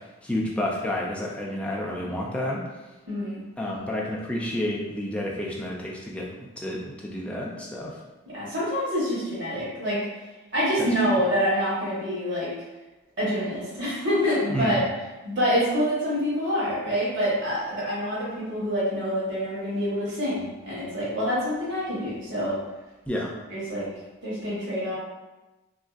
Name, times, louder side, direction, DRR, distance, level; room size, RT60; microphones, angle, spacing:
voice 1, 0.2-2.6 3.6-8.0 10.8-10.9 14.5-14.8 23.1-23.3, left 1 dB, 5° left, -3 dB, 0.3 m, -30 dB
voice 2, 3.1-3.4 8.3-10.2 10.5-12.5 13.2-14.8 15.2-22.6 23.5-23.9 24.2-25.0, equal, 50° right, -8 dB, 1.0 m, -26 dB
3.6 x 2.5 x 2.3 m, 1.1 s
head